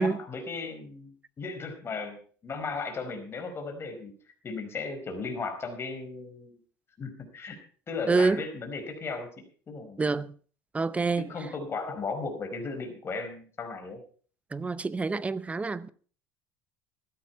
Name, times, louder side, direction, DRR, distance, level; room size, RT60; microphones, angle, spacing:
voice 1, 0.0-4.1 4.4-6.6 7.0-7.6 7.9-10.0 11.2-14.0, left 4 dB, 30° left, 4.9 m, -36 dB
voice 2, 8.1-8.4 10.0-10.4 10.7-11.3 14.5-15.9, right 4 dB, 15° right, 0.7 m, -27 dB
15.0 x 12.5 x 4.7 m
supercardioid pair, 120°, 8 cm